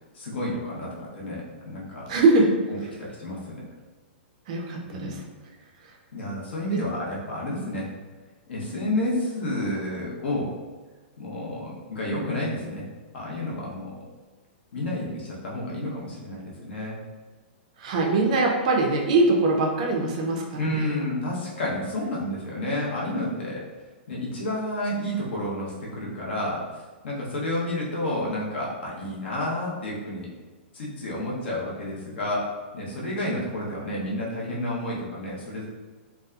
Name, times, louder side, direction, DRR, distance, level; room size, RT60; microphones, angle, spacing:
voice 1, 0.1-2.1 3.0-3.6 4.9-5.2 6.1-7.9 8.5-10.5 11.2-12.8 13.1-14.0 14.7-17.0 20.6-23.6 24.1-30.3 30.7-32.5 32.7-35.6, left 1 dB, 65° left, -4 dB, 0.8 m, -30 dB
voice 2, 2.1-2.6 4.5-5.2 6.7-6.8 17.8-20.9, right 2 dB, 35° right, 0 dB, 0.3 m, -22 dB
2.7 x 2.2 x 2.3 m, 1.3 s
hypercardioid pair, 175°, 6 cm